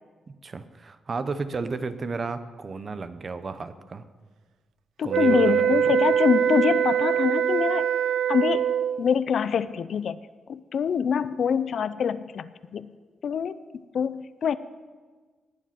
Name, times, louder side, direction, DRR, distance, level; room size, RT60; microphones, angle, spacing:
voice 1, 0.4-4.0 5.0-5.8, right 4 dB, 35° right, 12 dB, 0.7 m, -33 dB
voice 2, 5.0-7.9 8.3-10.2 10.5-12.9 13.2-14.6, left 7 dB, 60° left, 15 dB, 0.5 m, -25 dB
sound 1, 5.1-9.0, right 9 dB, 90° right, 0.4 m, -23 dB
19.0 x 7.6 x 5.8 m, 1.4 s
wide cardioid pair, 145°, 0 cm